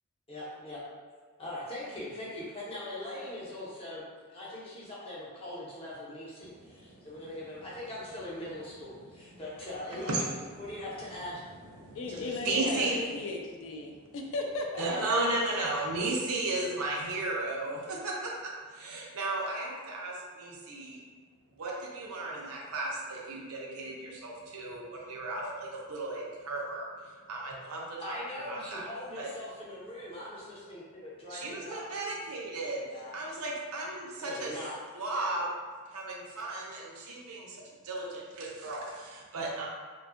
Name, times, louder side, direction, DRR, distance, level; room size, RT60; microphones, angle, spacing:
voice 1, 0.3-0.8 1.4-4.0 4.3-11.4 12.1-13.2 28.0-31.8 32.8-33.1 34.2-34.7, left 1 dB, 25° left, -7 dB, 0.6 m, -41 dB
voice 2, 6.4-7.1 10.1-10.2 10.6-10.7 11.4-13.0 13.8-14.2 14.8-21.0 21.6-28.8 29.1-29.3 31.3-32.8 33.1-34.5 34.9-35.5 35.9-39.7, right 2 dB, 90° right, -2 dB, 0.5 m, -35 dB
voice 3, 11.9-14.8, left 3 dB, 60° left, 1 dB, 0.3 m, -36 dB
2.5 x 2.2 x 2.5 m, 1.5 s
head